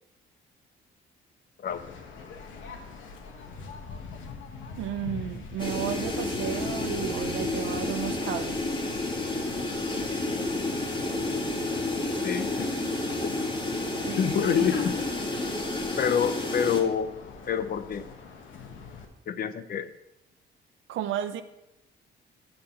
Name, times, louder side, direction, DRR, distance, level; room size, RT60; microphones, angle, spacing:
Waves surf, 1.7-19.1, left 5 dB, 75° left, 1.2 m, -42 dB
voice 1, 4.8-8.6 14.0-14.7 20.9-21.4, right 10 dB, 80° right, 11 dB, 0.6 m, -33 dB
sound 1, 5.6-16.8, left 2 dB, 25° left, 1.6 m, -30 dB
voice 2, 12.2-12.7 14.2-14.9 16.0-17.1 17.5-18.1 19.3-19.9, left 8 dB, 50° left, 13 dB, 0.5 m, -27 dB
6.7 x 5.7 x 5.5 m, 0.92 s
cardioid pair, 90°, 20 cm